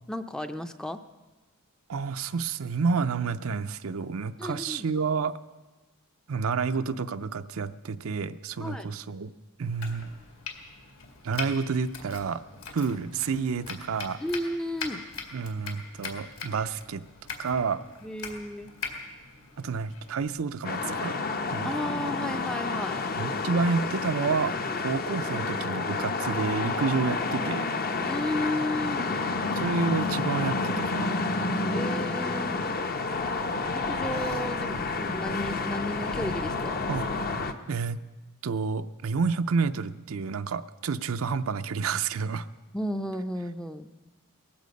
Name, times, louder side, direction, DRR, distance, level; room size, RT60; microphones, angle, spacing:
voice 1, 0.1-1.0 4.4-4.9 8.6-8.9 14.2-15.0 18.0-18.7 21.6-23.0 28.0-29.3 31.7-32.6 33.7-36.8 42.7-43.9, left 1 dB, 5° left, 8 dB, 0.5 m, -33 dB
voice 2, 1.9-5.3 6.3-9.3 9.6-10.1 11.2-12.4 12.7-14.2 15.3-17.0 17.4-17.8 19.6-21.2 21.5-21.7 23.2-27.6 29.6-31.1 36.9-37.1 37.7-38.0 38.4-42.5, right 5 dB, 70° right, 11 dB, 0.5 m, -29 dB
Domestic sounds home sounds, 9.6-20.3, left 5 dB, 65° left, 2.1 m, -42 dB
sound 1, 20.6-37.5, left 3 dB, 45° left, 0.8 m, -30 dB
18.5 x 15.0 x 5.2 m, 1.2 s
head